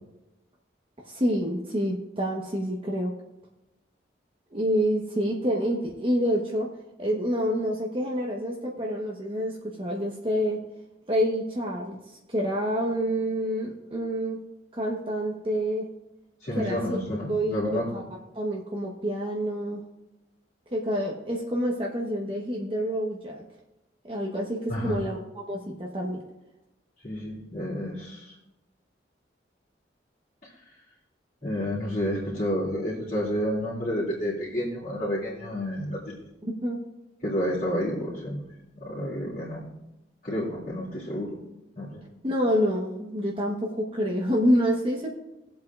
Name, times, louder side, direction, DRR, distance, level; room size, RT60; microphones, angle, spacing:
voice 1, 1.0-3.1 4.5-6.7 7.0-10.6 11.1-14.4 14.7-15.9 16.5-17.0 17.3-18.0 18.3-19.8 20.7-23.4 24.0-26.2 36.4-36.8 42.2-45.1, equal, 30° right, -1 dB, 1.1 m, -27 dB
voice 2, 16.4-17.9 24.7-25.0 27.0-28.3 30.4-30.5 31.4-36.1 37.2-38.4 38.8-39.6 40.2-41.4 41.8-42.0, equal, 45° left, -9 dB, 2.8 m, -30 dB
18.5 x 7.8 x 2.4 m, 0.95 s
head